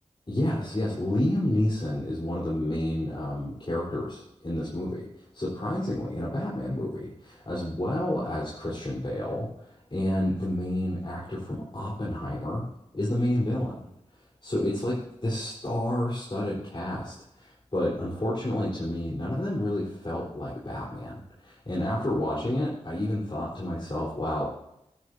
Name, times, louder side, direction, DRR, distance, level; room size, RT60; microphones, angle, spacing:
voice 1, 0.3-5.1 5.3-12.7 12.9-13.8 14.4-15.0 15.2-24.5, left 1 dB, 45° left, -7 dB, 4.0 m, -30 dB
14.0 x 13.0 x 2.7 m, 0.83 s
cardioid pair, 45°, 12 cm